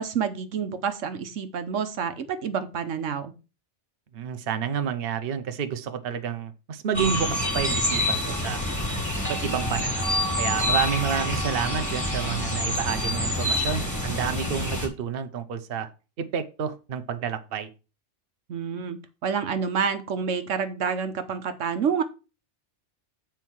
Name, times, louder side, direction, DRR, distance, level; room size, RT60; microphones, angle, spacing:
voice 1, 0.0-3.3 18.5-22.0, right 6 dB, 85° right, 9 dB, 1.2 m, -28 dB
voice 2, 4.1-8.6 9.2-15.9 16.2-17.7, right 7 dB, 55° right, 8 dB, 1.0 m, -30 dB
sound 1, 6.9-14.9, left 1 dB, 15° left, 2.1 m, -27 dB
7.5 x 4.5 x 6.2 m, 0.32 s
omnidirectional pair, 1.2 m